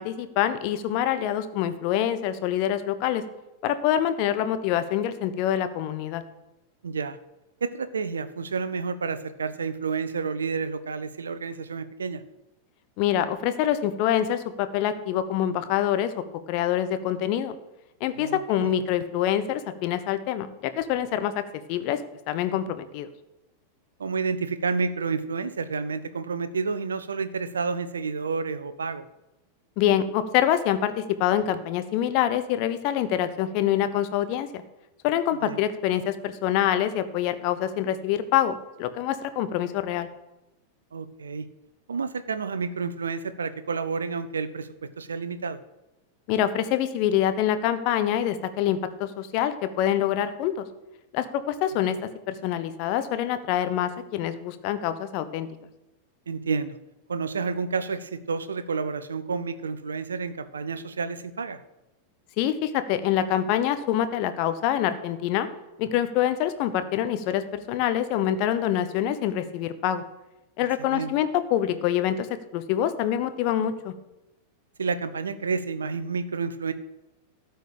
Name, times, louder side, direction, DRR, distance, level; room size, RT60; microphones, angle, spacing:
voice 1, 0.0-3.2 3.6-6.2 13.0-16.1 16.5-17.6 18.0-21.4 21.7-22.0 22.3-23.1 29.8-34.6 35.0-40.1 46.3-50.6 51.1-52.0 52.3-55.5 62.4-65.5 65.8-70.0 70.6-72.3 72.5-73.9, left 11 dB, 45° left, 10 dB, 1.0 m, -25 dB
voice 2, 6.8-7.2 7.6-12.2 18.2-18.7 24.0-29.1 35.4-35.6 40.9-41.5 41.9-44.7 45.0-45.6 56.3-56.8 57.1-61.6 70.9-71.1 74.8-76.7, right 5 dB, 70° right, 13 dB, 0.7 m, -30 dB
13.0 x 4.6 x 8.6 m, 0.95 s
figure-of-eight pair, 90°, 0 cm